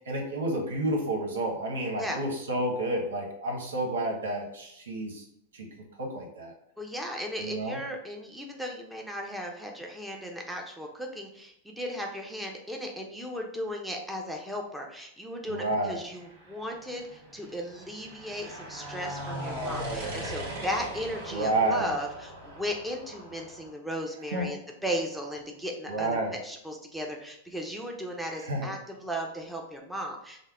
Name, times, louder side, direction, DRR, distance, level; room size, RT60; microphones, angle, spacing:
voice 1, 0.0-5.2 5.5-5.7 6.0-6.5 7.4-7.8 15.5-16.0 21.3-21.9 24.3-24.5 25.9-26.3 28.4-28.7, right 1 dB, 90° right, 0 dB, 1.3 m, -30 dB
voice 2, 6.8-30.4, equal, ahead, 0 dB, 0.7 m, -36 dB
sound 1, 16.2-23.7, right 1 dB, 70° right, 1.5 m, -39 dB
5.5 x 2.1 x 3.7 m, 0.75 s
hypercardioid pair, 120°, 0 cm